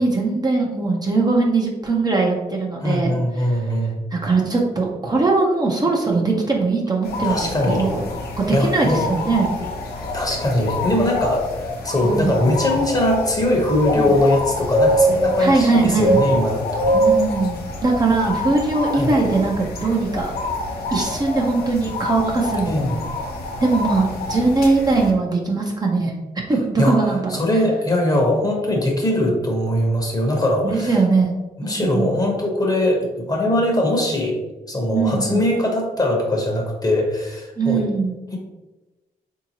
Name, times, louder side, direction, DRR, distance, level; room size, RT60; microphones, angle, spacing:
voice 1, 0.0-3.6 4.1-8.0 8.4-9.6 12.0-12.3 13.9-14.1 15.4-16.2 16.9-20.3 20.9-22.9 23.6-26.1 26.5-27.3 30.6-32.1 34.9-35.4 37.6-38.2, right 3 dB, 25° right, -1 dB, 0.6 m, -20 dB
voice 2, 2.8-4.0 7.2-7.8 8.5-9.0 10.1-11.5 11.8-16.9 18.9-19.1 22.7-23.1 26.8-31.0 31.6-34.4 34.7-37.9, left 1 dB, 25° left, 0 dB, 0.9 m, -21 dB
sound 1, 7.0-25.1, equal, 85° left, 0.7 m, -25 dB
3.5 x 2.8 x 2.8 m, 1.1 s
cardioid pair, 70°, 16 cm